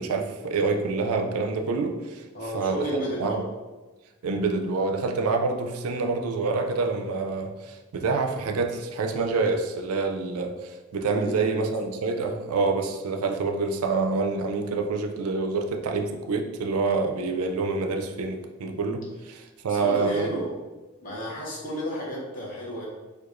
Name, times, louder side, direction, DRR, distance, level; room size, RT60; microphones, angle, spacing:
voice 1, 0.0-2.2 2.5-2.9 3.2-3.4 4.2-20.3, right 4 dB, 85° right, 5 dB, 0.4 m, -27 dB
voice 2, 2.3-3.5 6.7-6.8 11.2-11.7 19.7-20.5 21.0-22.9, equal, 40° left, -5 dB, 0.8 m, -32 dB
4.6 x 2.3 x 2.5 m, 1.2 s
head